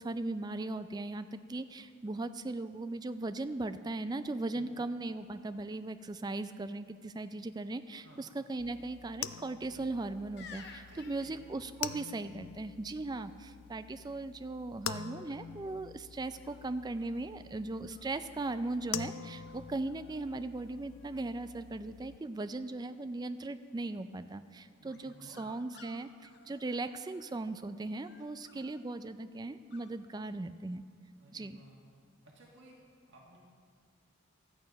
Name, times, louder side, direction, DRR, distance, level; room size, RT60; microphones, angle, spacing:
voice 1, 0.0-30.8 31.3-31.6, right 2 dB, 20° right, 10 dB, 0.3 m, -38 dB
sound 1, 8.6-22.2, left 8 dB, 85° left, 0.4 m, -46 dB
sound 2, 10.4-12.1 15.3-15.7 16.4-17.3 17.8-18.8 19.5-19.6 19.9-20.4 20.6-21.2 24.9-27.4 27.9-28.8 29.7-29.9, left 5 dB, 55° left, 0.8 m, -56 dB
voice 2, 10.9-11.4 24.8-25.5 31.2-31.8 32.2-32.8 33.1-33.4, right 1 dB, 65° right, -2 dB, 1.7 m, -57 dB
13.0 x 9.0 x 5.2 m, 2.1 s
head